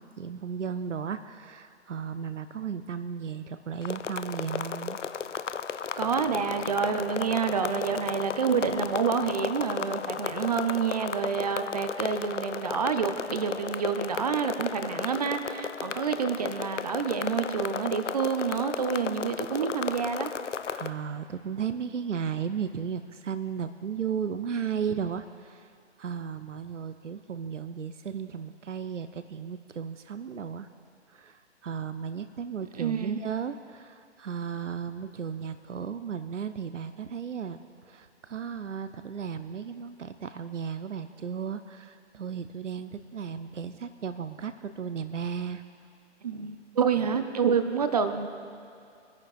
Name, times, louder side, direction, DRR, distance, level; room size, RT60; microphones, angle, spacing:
voice 1, 0.0-5.0 20.7-25.7 26.0-30.7 31.1-45.6, right 7 dB, 85° right, 11 dB, 0.6 m, -35 dB
sound 1, 3.8-20.9, left 7 dB, 80° left, 0.5 m, -34 dB
voice 2, 6.0-20.3 32.8-33.2 46.2-48.3, right 6 dB, 35° right, 8 dB, 0.5 m, -28 dB
24.5 x 10.5 x 2.4 m, 2.5 s
figure-of-eight pair, 130°, 36 cm